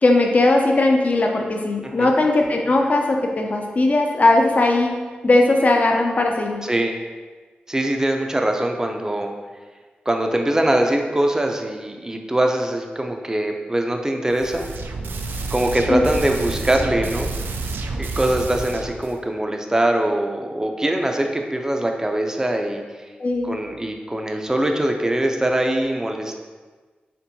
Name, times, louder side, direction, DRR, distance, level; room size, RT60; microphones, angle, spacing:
voice 1, 0.0-4.9 5.2-6.6 15.9-16.0 23.2-23.6, left 2 dB, 45° left, 2 dB, 0.6 m, -18 dB
voice 2, 6.6-6.9 7.7-9.3 10.1-14.7 15.5-17.3 18.0-22.8 23.4-26.3, right 1 dB, 15° right, 3 dB, 0.5 m, -22 dB
sound 1, 14.3-19.2, right 3 dB, 85° right, 0.3 m, -29 dB
4.4 x 3.5 x 2.7 m, 1.4 s
cardioid pair, 70°, 3 cm